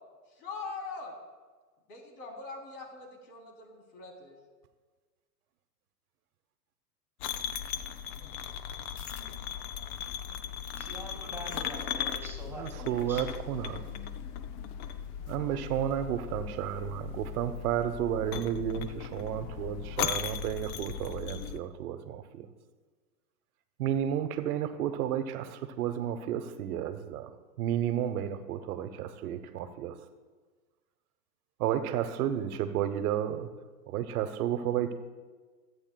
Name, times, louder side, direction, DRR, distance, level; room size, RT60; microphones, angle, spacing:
voice 1, 0.3-1.1 1.9-4.4, left 4 dB, 65° left, 3.5 m, -42 dB
sound 1, 7.2-21.6, left 9 dB, 30° left, 0.4 m, -38 dB
voice 2, 10.7-13.3, right 1 dB, 5° right, 2.7 m, -44 dB
voice 3, 12.5-13.8 15.3-22.5 23.8-27.3 27.6-29.9 31.6-33.5 33.9-34.9, right 10 dB, 60° right, 1.0 m, -32 dB
25.0 x 8.7 x 2.3 m
hypercardioid pair, 110°, 49 cm